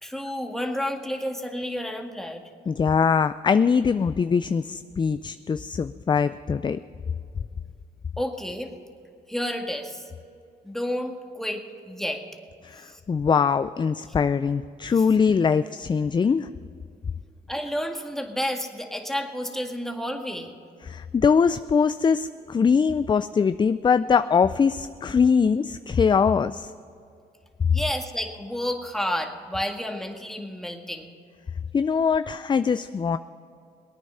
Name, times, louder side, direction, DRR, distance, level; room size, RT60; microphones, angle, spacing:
voice 1, 0.0-2.4 8.2-8.7 9.3-10.0 10.6-12.2 12.9-13.0 15.0-15.1 17.5-20.5 27.7-31.1, equal, ahead, 3 dB, 1.9 m, -30 dB
voice 2, 2.7-6.8 12.6-16.5 20.9-26.7 31.7-33.2, left 6 dB, 25° left, 13 dB, 0.4 m, -22 dB
21.0 x 9.3 x 5.6 m, 2.5 s
cardioid pair, 70°, 18 cm